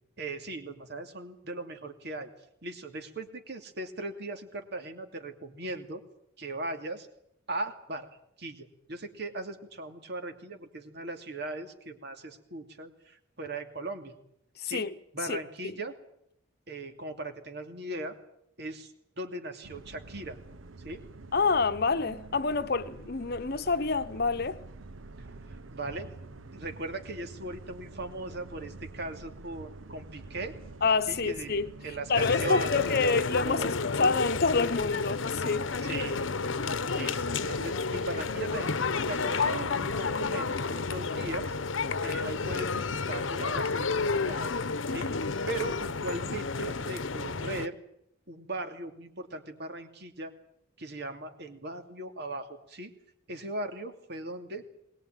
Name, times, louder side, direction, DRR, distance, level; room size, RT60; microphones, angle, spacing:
voice 1, 0.2-2.3 2.6-6.0 6.4-7.1 7.5-8.1 8.4-14.1 14.6-14.9 15.1-15.9 16.7-18.2 18.6-20.4 20.8-21.0 25.2-26.1 26.5-30.5 31.1-33.7 35.7-36.2 36.9-41.5 42.0-44.6 44.9-45.1 45.5-47.8 48.3-50.3 50.8-52.9 53.3-54.6, right 2 dB, 55° right, 2.7 m, -38 dB
voice 2, 14.6-14.9 15.3-15.4 15.6-15.7 21.3-24.6 30.8-31.7 32.1-33.7 34.0-35.7 44.9-45.2, left 4 dB, 55° left, 1.0 m, -27 dB
sound 1, 19.6-32.5, right 3 dB, 85° right, 0.9 m, -47 dB
sound 2, 32.1-47.7, left 4 dB, 80° left, 1.0 m, -31 dB
21.5 x 20.0 x 9.1 m
head